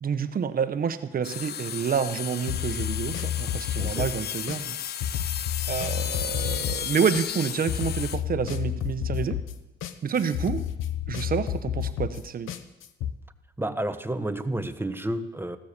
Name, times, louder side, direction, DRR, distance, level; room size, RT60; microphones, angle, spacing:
voice 1, 0.0-4.8 5.7-9.4 10.0-10.6 11.1-12.5, right 7 dB, 45° right, 11 dB, 1.1 m, -28 dB
sound 1, 1.2-8.2, left 10 dB, 55° left, 0.5 m, -34 dB
sound 2, 2.5-13.1, left 10 dB, 90° left, 0.9 m, -31 dB
voice 2, 3.8-4.1 13.6-15.6, right 1 dB, 10° right, 10 dB, 1.1 m, -30 dB
15.5 x 13.0 x 6.8 m, 1.0 s
cardioid pair, 90°, 20 cm